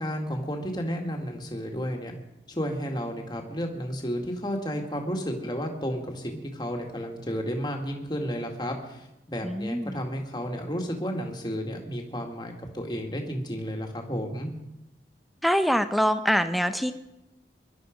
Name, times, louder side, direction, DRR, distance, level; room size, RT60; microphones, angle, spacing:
voice 1, 0.0-2.2 2.5-14.5, equal, 25° left, 2 dB, 2.1 m, -32 dB
voice 2, 9.4-10.0 15.4-16.9, equal, ahead, 10 dB, 0.7 m, -24 dB
23.0 x 11.5 x 5.2 m, 0.92 s
head